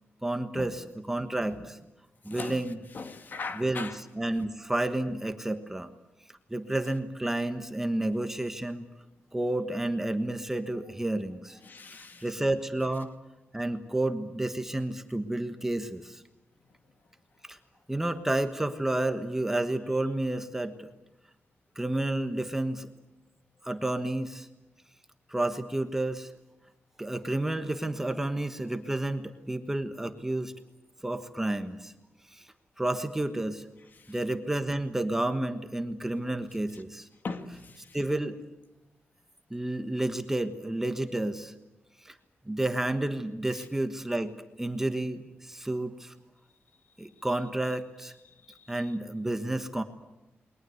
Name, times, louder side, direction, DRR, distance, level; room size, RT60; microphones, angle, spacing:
voice 1, 0.2-1.8 2.2-2.8 3.5-5.9 6.5-8.9 9.3-11.6 11.9-13.1 13.5-16.2 17.5-17.6 17.9-20.9 21.7-22.9 23.6-24.5 25.3-26.3 27.0-30.5 31.0-31.9 32.3-32.4 32.8-33.7 34.1-37.1 37.9-38.4 39.5-41.5 42.0-42.2 42.4-46.1 47.0-48.1 48.7-49.8, right 1 dB, 10° right, 1.3 m, -30 dB
voice 2, 2.3-2.6 2.9-4.0 11.6-12.2 34.0-34.2 37.2-38.0 43.5-43.6, left 4 dB, 45° left, 2.1 m, -39 dB
29.0 x 22.0 x 8.0 m
wide cardioid pair, 160°, 4 cm